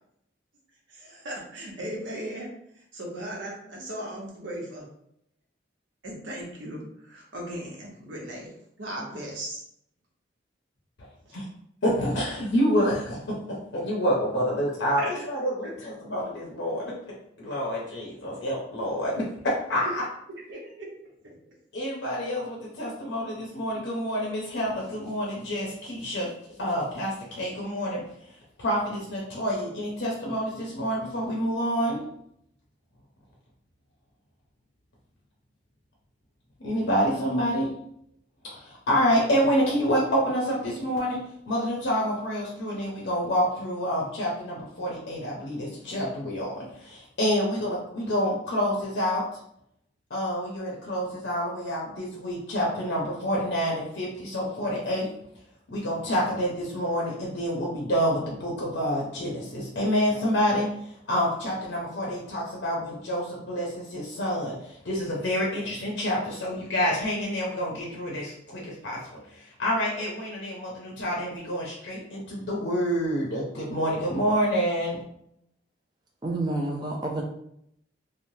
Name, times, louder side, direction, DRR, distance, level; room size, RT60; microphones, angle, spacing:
voice 1, 0.9-4.9 6.0-8.5 8.8-9.6 11.2-11.3 15.0-15.1 15.6-15.7 20.5-20.9 21.2-21.5, right 1 dB, 85° right, -2 dB, 0.9 m, -37 dB
voice 2, 11.8-13.2 13.5-16.9 17.4-19.9 21.7-26.3 26.6-32.0 36.6-37.7 38.5-49.2 50.1-55.1 55.7-75.0, equal, 70° left, -4 dB, 0.6 m, -28 dB
voice 3, 76.2-77.2, right 2 dB, 25° right, -1 dB, 0.4 m, -29 dB
3.1 x 2.1 x 2.7 m, 0.73 s
head